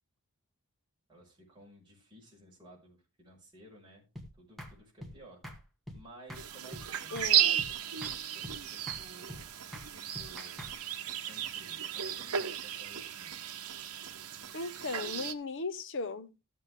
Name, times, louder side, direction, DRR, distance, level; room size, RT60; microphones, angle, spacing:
voice 1, 1.1-4.1 4.4-5.4 5.9-9.5 9.9-10.7 11.2-13.4, right 1 dB, 20° right, 5.2 m, -55 dB
sound 1, 4.2-4.3 4.6-4.7 5.0-5.2 5.4-5.6 5.9-6.0 6.3-6.5 6.7-7.3 7.6-7.7 8.0-8.2 8.4-8.6 8.9-9.0 9.3-9.4 9.7-9.9 10.2-10.7, equal, ahead, 1.9 m, -44 dB
sound 2, 6.3-15.3, right 10 dB, 85° right, 0.9 m, -34 dB
voice 2, 7.1-7.5 14.5-16.3, left 3 dB, 55° left, 0.8 m, -37 dB
14.0 x 7.6 x 3.6 m
head